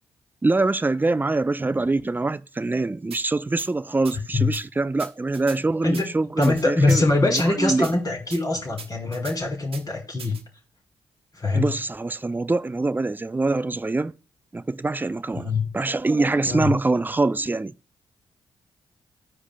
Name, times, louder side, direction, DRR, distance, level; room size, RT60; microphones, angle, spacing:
voice 1, 0.4-8.0 11.5-14.1 14.5-15.5 15.7-17.7, right 3 dB, 15° right, 0.4 m, -24 dB
sound 1, 3.1-3.2 3.6-3.7 4.0-4.2 4.5-4.6 5.0-5.6 5.9-6.0 6.4-7.0 7.4-7.5 7.8-7.9 8.3-8.4 8.8-9.4 9.7-9.8 10.2-10.4, right 5 dB, 60° right, 1.0 m, -39 dB
voice 2, 6.4-10.4 11.4-11.7 15.3-15.7 16.5-16.7, left 2 dB, 35° left, 2.5 m, -23 dB
14.0 x 4.8 x 2.2 m
supercardioid pair, 50°, 11 cm